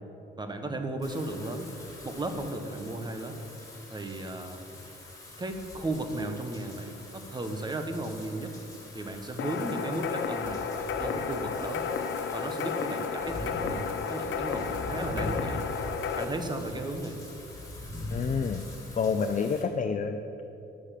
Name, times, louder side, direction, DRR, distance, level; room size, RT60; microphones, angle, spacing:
voice 1, 0.4-1.7 2.0-3.4 3.9-4.7 5.4-8.6 8.9-10.7 11.0-11.9 12.3-15.7 16.2-17.2, right 2 dB, 20° right, 6 dB, 1.2 m, -35 dB
Wind / Rain, 1.0-19.6, left 1 dB, 15° left, 2.6 m, -43 dB
sound 1, 9.4-16.2, left 6 dB, 75° left, 0.8 m, -32 dB
voice 2, 18.1-18.6 19.0-20.4, left 5 dB, 40° left, 6 dB, 0.6 m, -28 dB
10.0 x 6.4 x 7.5 m, 3.0 s
cardioid pair, 90°, 20 cm